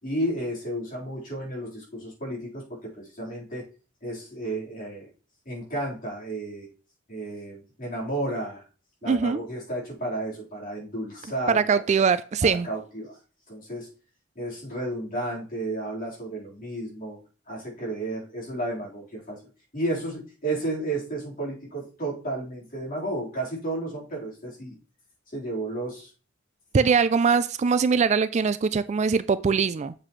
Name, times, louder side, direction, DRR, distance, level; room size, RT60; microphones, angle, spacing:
voice 1, 0.0-3.7 4.0-5.1 5.5-6.7 7.1-8.6 9.0-11.6 12.4-13.2 13.5-13.9 14.4-17.2 17.5-19.4 19.7-24.8 25.3-26.1, right 1 dB, 45° left, -4 dB, 4.1 m, -32 dB
voice 2, 9.1-9.4 11.5-12.7 26.7-29.9, right 5 dB, 35° right, 14 dB, 0.3 m, -22 dB
7.5 x 7.5 x 3.2 m, 0.35 s
head